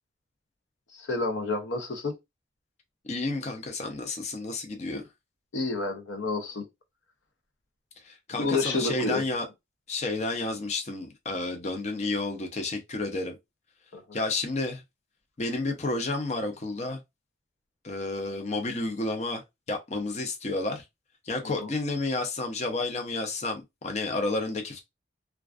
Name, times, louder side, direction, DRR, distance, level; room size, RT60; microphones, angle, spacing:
voice 1, 0.9-2.2 4.9-5.0 5.5-6.7 8.4-9.2 13.9-14.0 21.4-21.7, left 3 dB, 75° left, 0.6 m, -29 dB
voice 2, 3.0-5.0 8.0-9.4 9.9-13.4 14.1-14.8 15.4-17.0 17.8-19.4 19.7-20.8 21.2-24.8, left 2 dB, 35° left, 0.5 m, -31 dB
2.4 x 2.3 x 2.3 m
head